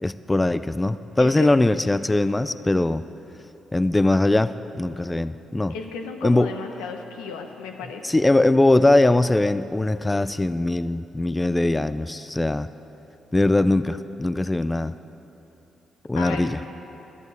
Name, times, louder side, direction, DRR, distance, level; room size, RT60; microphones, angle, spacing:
voice 1, 0.0-3.0 3.7-5.7 6.2-6.5 8.0-12.7 13.3-14.9 16.1-16.6, left 2 dB, 20° left, 13 dB, 0.3 m, -21 dB
voice 2, 5.7-8.2 16.2-16.7, left 5 dB, 90° left, 4 dB, 0.9 m, -34 dB
11.0 x 7.3 x 8.0 m, 3.0 s
supercardioid pair, 55°, 0 cm